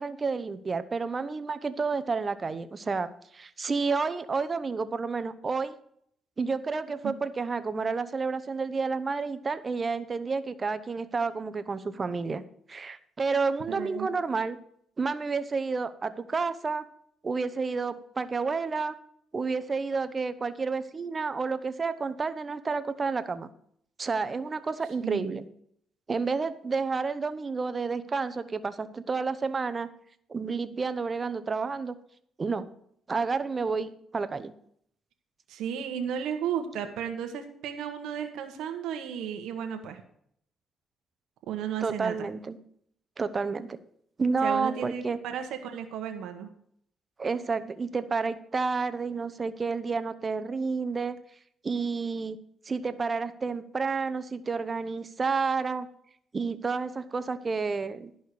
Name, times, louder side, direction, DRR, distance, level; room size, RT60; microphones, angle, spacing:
voice 1, 0.0-5.8 6.4-12.4 12.7-14.6 15.0-16.8 17.2-19.0 19.3-23.5 24.0-25.5 26.1-29.9 30.3-32.0 32.4-32.7 33.1-34.5 41.8-42.6 43.2-43.8 44.2-45.2 47.2-51.2 51.6-52.4 52.6-55.9 56.3-58.1, right 4 dB, 35° right, 12 dB, 0.8 m, -30 dB
voice 2, 13.7-14.1 25.0-25.4 35.5-40.0 41.5-42.3 44.4-46.5, right 8 dB, 85° right, 6 dB, 1.1 m, -34 dB
11.5 x 5.5 x 6.6 m, 0.67 s
cardioid pair, 90°, 0 cm